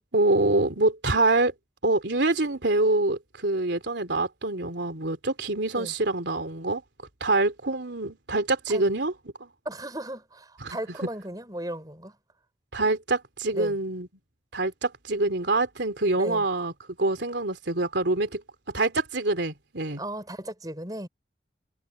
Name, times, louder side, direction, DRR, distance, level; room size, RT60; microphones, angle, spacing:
voice 1, 0.1-1.5 1.8-6.8 7.2-9.1 9.4-9.5 10.6-10.8 12.7-14.1 14.5-16.7 17.0-18.4 18.7-20.0, right 2 dB, 75° right, 3.0 m, -25 dB
voice 2, 9.6-12.2 13.5-13.8 16.2-16.4 20.0-21.1, right 1 dB, 20° right, 6.0 m, -36 dB
head